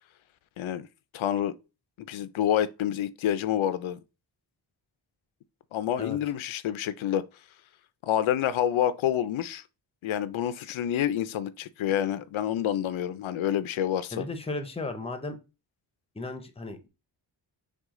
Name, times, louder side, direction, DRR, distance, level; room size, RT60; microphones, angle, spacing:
voice 1, 0.6-0.9 1.1-1.5 2.0-4.0 5.7-7.2 8.0-9.6 10.0-14.3, left 10 dB, 90° left, 0.5 m, -28 dB
voice 2, 14.1-15.4 16.1-16.9, left 2 dB, 15° left, 0.6 m, -35 dB
6.1 x 2.3 x 3.6 m
wide cardioid pair, 170°, 46 cm